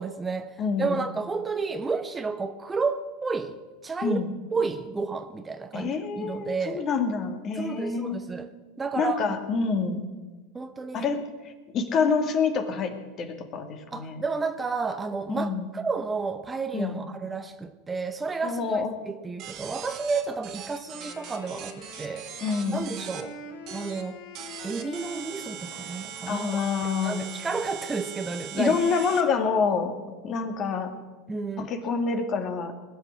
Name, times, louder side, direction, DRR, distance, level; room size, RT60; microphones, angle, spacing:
voice 1, 0.0-4.2 4.5-6.9 7.6-8.5 8.8-9.2 9.9-10.0 10.5-11.1 13.9-22.3 22.7-23.4 23.7-24.2 24.6-26.6 27.0-28.8 31.3-31.7, right 4 dB, 15° right, 0.9 m, -31 dB
voice 2, 0.6-1.0 4.0-4.3 5.7-8.2 9.0-10.0 10.9-14.2 15.3-15.7 16.7-17.0 18.4-18.9 22.4-22.8 26.3-27.2 28.5-29.9 30.2-30.9 31.6-32.7, left 5 dB, 40° left, 2.2 m, -27 dB
sound 1, 19.4-23.2 23.7-24.0 24.3-29.2, right 9 dB, 50° right, 1.9 m, -40 dB
Wind instrument woodwind instrument, 20.8-28.5, left 2 dB, 70° left, 4.6 m, -46 dB
19.5 x 6.7 x 9.5 m
hypercardioid pair, 95°, 0 cm